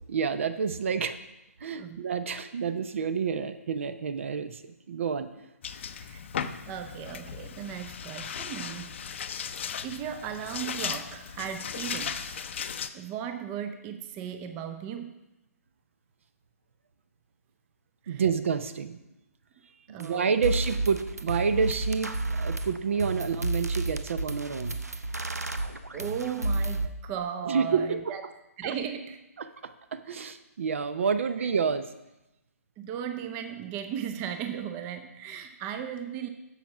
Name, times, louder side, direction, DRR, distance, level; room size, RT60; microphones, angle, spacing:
voice 1, 0.1-1.2 1.6-4.6 4.9-5.3 18.1-19.0 19.9-22.1 22.4-24.8 27.4-28.1 28.6-28.7 29.4-31.9, right 6 dB, 55° right, 12 dB, 0.8 m, -29 dB
sound 1, 5.6-12.9, left 7 dB, 50° left, 0.6 m, -36 dB
voice 2, 6.7-9.0 9.4-12.4 12.9-15.1 18.0-18.2 19.9-20.3 25.9-28.2 28.6-29.2 31.4-31.5 32.8-36.3, right 8 dB, 20° right, 8 dB, 0.7 m, -36 dB
sound 2, 20.0-20.1 20.4-26.9, right 1 dB, 90° right, 0.9 m, -31 dB
10.0 x 7.3 x 6.0 m, 0.94 s
figure-of-eight pair, 135°, 8 cm